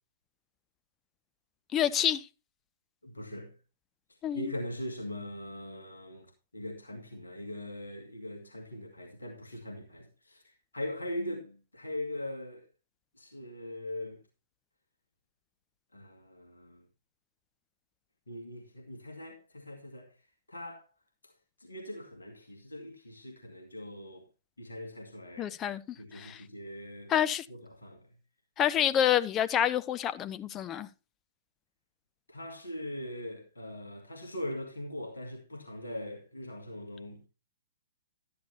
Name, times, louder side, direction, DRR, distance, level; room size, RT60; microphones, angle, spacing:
voice 1, 1.7-2.3 4.2-4.5 25.4-25.8 26.1-26.4 27.1-27.5 28.6-30.9, left 10 dB, 20° left, 0.6 m, -28 dB
voice 2, 3.0-3.5 4.1-12.7 13.1-14.2 15.9-16.9 18.3-20.2 20.5-20.9 21.2-21.3 21.6-24.3 24.6-25.6 26.0-27.1 27.5-28.2 32.3-37.3, left 1 dB, 75° left, 2.1 m, -41 dB
12.5 x 10.5 x 2.8 m
figure-of-eight pair, 115°, 0 cm